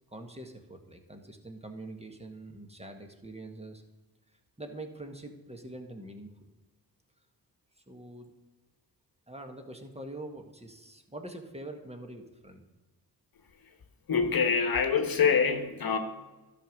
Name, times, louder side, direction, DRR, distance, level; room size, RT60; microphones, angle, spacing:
voice 1, 0.1-3.8 4.3-6.5 7.9-8.3 9.3-12.7, right 1 dB, 15° right, 4 dB, 1.5 m, -44 dB
voice 2, 14.1-16.0, left 6 dB, 55° left, 7 dB, 1.2 m, -25 dB
11.5 x 5.4 x 6.4 m, 1.2 s
cardioid pair, 55°, 42 cm